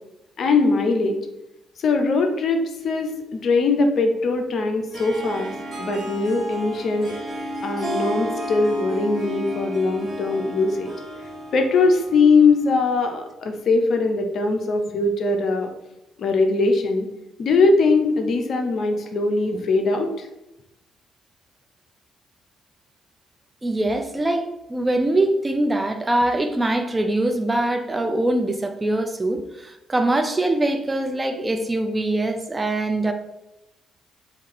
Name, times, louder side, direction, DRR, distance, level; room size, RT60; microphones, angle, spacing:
voice 1, 0.4-1.2 1.8-7.1 7.6-10.9 11.5-15.7 16.2-17.1 17.4-20.3, left 3 dB, 50° left, 6 dB, 0.4 m, -21 dB
Harp, 4.9-12.6, right 1 dB, 35° right, 0.9 m, -32 dB
voice 2, 23.6-33.1, right 1 dB, 20° right, 6 dB, 0.4 m, -23 dB
3.5 x 2.5 x 3.0 m, 0.93 s
figure-of-eight pair, 45°, 0 cm